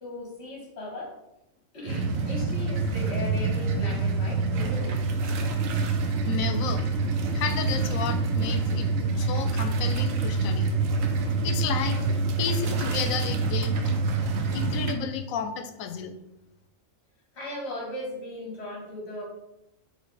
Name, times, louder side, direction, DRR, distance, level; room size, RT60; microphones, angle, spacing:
voice 1, 0.0-1.1 1.7-5.0 17.3-19.3, left 1 dB, 55° left, -2 dB, 1.6 m, -37 dB
sound 1, 1.9-14.9, right 3 dB, 85° right, 1.0 m, -26 dB
voice 2, 6.3-6.8 7.3-8.9 9.2-10.7 11.4-13.7 14.5-16.1, left 6 dB, 90° left, 8 dB, 1.0 m, -32 dB
4.2 x 3.0 x 4.0 m, 0.89 s
omnidirectional pair, 1.4 m